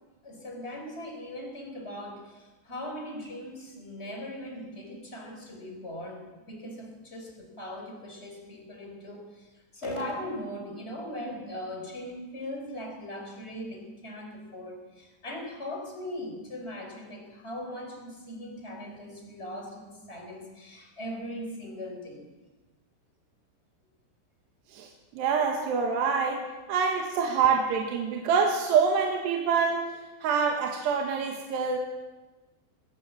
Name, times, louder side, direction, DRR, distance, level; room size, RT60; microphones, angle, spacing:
voice 1, 0.2-22.3, left 1 dB, 15° left, 2 dB, 3.8 m, -39 dB
voice 2, 24.7-31.8, right 6 dB, 70° right, 2 dB, 3.4 m, -26 dB
20.5 x 18.0 x 7.5 m, 1.2 s
omnidirectional pair, 5.6 m